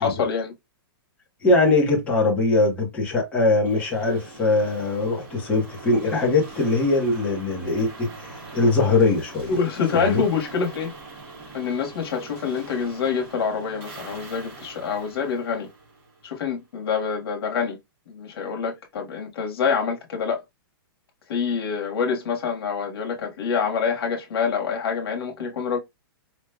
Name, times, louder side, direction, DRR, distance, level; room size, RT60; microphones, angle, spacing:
voice 1, 0.0-0.5 9.5-10.9 11.5-15.7 16.2-17.8 18.1-20.4 21.3-25.8, left 6 dB, 70° left, 1.5 m, -26 dB
voice 2, 1.4-9.6 9.9-10.2, left 2 dB, 10° left, 1.1 m, -21 dB
sound 1, 3.7-16.5, right 3 dB, 40° right, 2.7 m, -43 dB
4.9 x 3.1 x 2.3 m
hypercardioid pair, 170°, 13 cm